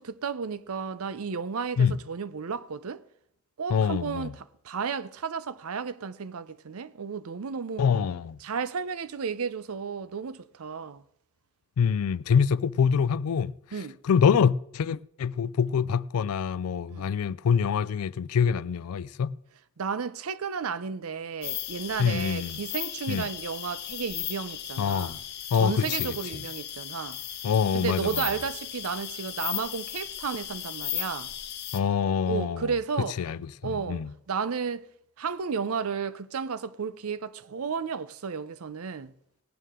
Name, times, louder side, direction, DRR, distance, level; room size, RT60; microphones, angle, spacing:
voice 1, 0.0-3.0 3.6-7.8 8.4-11.0 13.7-14.0 16.9-17.1 19.8-25.2 25.6-27.2 27.7-31.3 32.3-33.2 33.6-34.9 35.2-39.1, right 6 dB, 80° right, 0.6 m, -33 dB
voice 2, 3.7-4.3 7.8-8.4 11.8-13.5 14.0-19.3 22.0-22.6 23.1-23.2 24.8-25.2 25.5-25.9 27.4-28.2 31.7-32.7 33.2-33.4 33.9-34.1, left 7 dB, 90° left, 0.4 m, -25 dB
sound 1, 21.4-31.8, left 12 dB, 50° left, 0.8 m, -36 dB
17.5 x 9.2 x 3.7 m
head